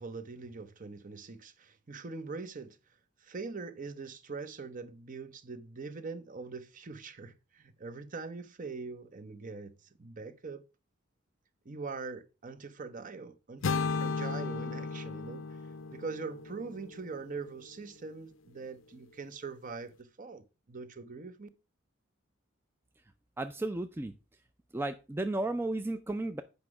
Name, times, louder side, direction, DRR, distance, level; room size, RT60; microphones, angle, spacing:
voice 1, 0.0-10.6 11.6-15.6 15.9-21.5, right 4 dB, 40° right, 0.7 m, -43 dB
sound 1, 13.6-17.6, left 4 dB, 75° left, 0.5 m, -35 dB
voice 2, 23.4-24.1 24.7-26.4, right 2 dB, 10° right, 0.3 m, -33 dB
8.1 x 5.2 x 4.7 m
head